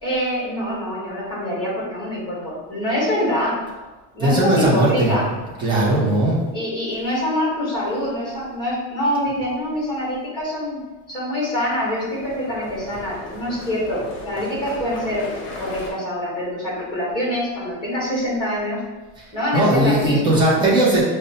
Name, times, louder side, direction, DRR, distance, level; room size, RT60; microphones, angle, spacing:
voice 1, 0.0-3.6 4.1-5.3 6.5-10.8 11.1-15.3 15.6-18.8 19.3-20.4, left 1 dB, 10° left, -6 dB, 1.0 m, -25 dB
voice 2, 4.2-5.2 5.6-6.4 19.5-21.0, right 1 dB, 15° right, -6 dB, 0.5 m, -18 dB
sound 1, 8.0-8.4 11.6-15.9, left 1 dB, 45° left, 0.8 m, -37 dB
5.1 x 2.1 x 2.7 m, 1.2 s
cardioid pair, 175°, 39 cm